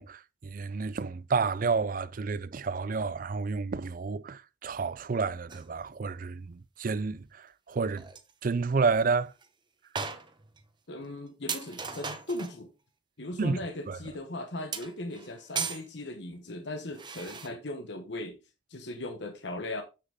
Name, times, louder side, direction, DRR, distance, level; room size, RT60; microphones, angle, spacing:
voice 1, 0.0-8.1 8.4-9.3 13.4-13.6 13.9-14.0, right 4 dB, 45° right, 0.4 m, -30 dB
sound 1, 5.5-5.7 7.7-7.8 8.0-8.3 8.9-9.0 9.4-9.5 9.9-10.6 11.0-11.1 11.5-12.6 14.7-15.9 16.9-17.5, right 5 dB, 25° right, 0.9 m, -37 dB
voice 2, 10.9-12.7 13.2-18.4 18.7-19.8, left 1 dB, 60° left, 1.1 m, -38 dB
7.7 x 6.5 x 3.6 m
head